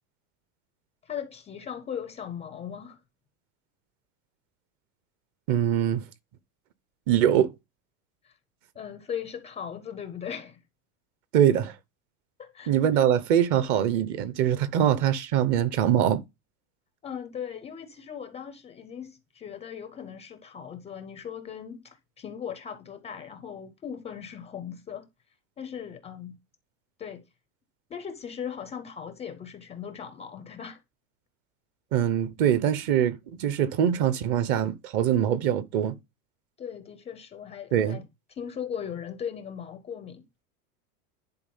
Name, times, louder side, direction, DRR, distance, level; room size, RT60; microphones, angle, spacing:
voice 1, 1.0-3.0 8.2-8.4 8.7-10.6 12.4-13.1 17.0-25.1 25.6-26.4 27.0-27.2 27.9-30.8 36.6-40.3, left 8 dB, 15° left, 0.4 m, -38 dB
voice 2, 5.5-6.0 7.1-7.5 11.3-11.8 12.7-16.2 31.9-36.0 37.7-38.0, right 10 dB, 40° right, 0.8 m, -23 dB
11.0 x 4.1 x 5.4 m
supercardioid pair, 155°, 44 cm